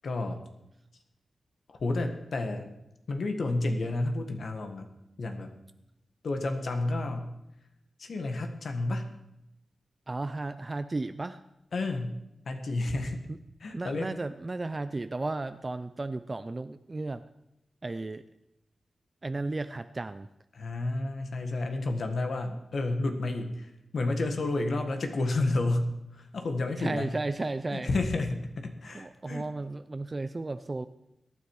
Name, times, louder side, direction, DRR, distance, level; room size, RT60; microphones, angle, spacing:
voice 1, 0.0-0.4 1.7-2.7 3.1-4.9 5.2-5.5 6.2-7.3 8.0-9.0 11.7-12.2 12.4-13.2 13.6-14.1 20.5-27.1 27.7-29.5, left 2 dB, 65° left, 5 dB, 1.6 m, -31 dB
voice 2, 10.1-11.4 13.3-13.4 13.7-17.2 17.8-18.3 19.2-20.3 22.5-22.6 26.8-27.9 28.9-30.9, right 2 dB, 30° right, 11 dB, 0.5 m, -34 dB
22.0 x 9.7 x 4.8 m, 0.86 s
wide cardioid pair, 100°, 0 cm